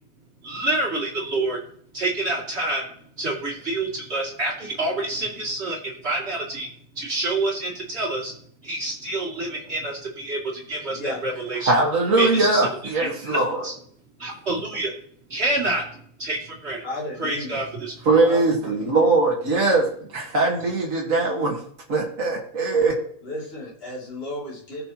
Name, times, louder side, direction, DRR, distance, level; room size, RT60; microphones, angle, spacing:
voice 1, 0.4-1.6 1.9-2.9 3.2-8.4 8.6-11.7 12.2-12.7 13.2-13.4 13.6-13.7 14.2-14.9 15.3-16.8 17.2-18.1, right 2 dB, 45° right, -2 dB, 2.9 m, -27 dB
voice 2, 10.9-11.2 13.0-13.1 16.8-17.6 18.2-18.9 23.2-24.9, left 1 dB, 40° left, -5 dB, 2.9 m, -34 dB
voice 3, 11.6-13.6 18.0-21.6 21.9-23.0, right 3 dB, 65° right, -2 dB, 2.1 m, -21 dB
19.0 x 6.7 x 2.9 m, 0.63 s
omnidirectional pair, 1.5 m